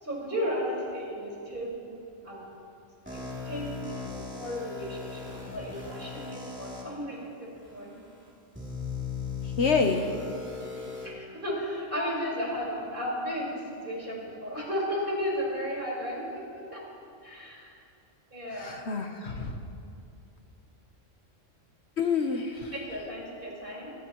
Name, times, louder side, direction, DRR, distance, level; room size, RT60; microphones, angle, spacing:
voice 1, 0.0-2.4 3.1-7.9 11.0-16.8 17.2-17.7 18.3-18.8 22.7-23.9, equal, 40° right, -4 dB, 5.0 m, -34 dB
sound 1, 3.1-6.8 7.6-7.7 8.5-11.1, left 5 dB, 10° right, 3.0 m, -38 dB
voice 2, 9.4-10.0 18.6-19.6 22.0-22.7, left 5 dB, 60° left, 4 dB, 1.2 m, -27 dB
23.5 x 20.0 x 3.1 m, 2.6 s
omnidirectional pair, 1.3 m